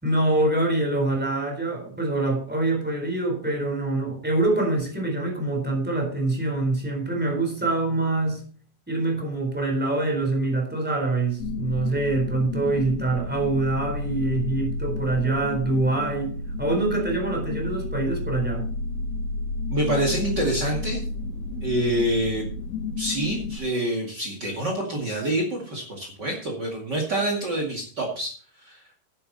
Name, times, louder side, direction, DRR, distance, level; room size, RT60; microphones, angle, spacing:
voice 1, 0.0-8.4 8.9-18.7, right 2 dB, ahead, 2 dB, 2.8 m, -25 dB
sound 1, 11.4-23.6, left 2 dB, 60° left, 1.7 m, -31 dB
voice 2, 19.7-21.0 21.6-22.5 23.0-28.8, right 1 dB, 55° right, 0 dB, 1.1 m, -27 dB
12.0 x 11.0 x 4.1 m, 0.42 s
omnidirectional pair, 6.0 m